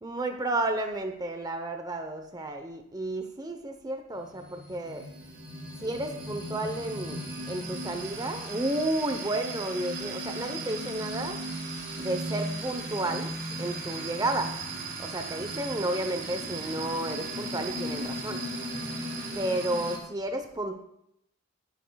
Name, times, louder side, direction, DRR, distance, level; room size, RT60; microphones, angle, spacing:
voice 1, 0.0-5.0 5.8-7.2 7.5-11.4 12.0-13.3 13.6-14.5 15.0-18.4 19.3-20.8, right 1 dB, 20° right, 6 dB, 0.8 m, -32 dB
sound 1, 4.1-20.0, right 2 dB, 45° right, 1.9 m, -36 dB
21.0 x 9.1 x 2.3 m, 0.76 s
head